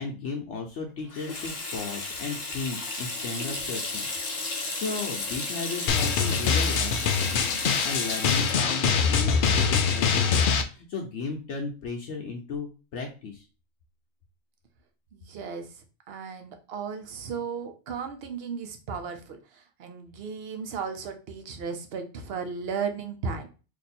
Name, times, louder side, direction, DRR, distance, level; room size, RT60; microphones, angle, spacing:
voice 1, 0.0-4.1 4.5-7.5 7.8-13.5, left 4 dB, 65° left, 2 dB, 0.9 m, -35 dB
Water tap faucet / Sink (filling or washing), 1.1-10.4, left 3 dB, 40° left, 0.7 m, -34 dB
Drum, 5.9-10.6, left 6 dB, 80° left, 0.4 m, -24 dB
voice 2, 15.1-23.5, right 6 dB, 55° right, 6 dB, 0.8 m, -35 dB
3.0 x 2.7 x 4.1 m, 0.33 s
omnidirectional pair, 1.4 m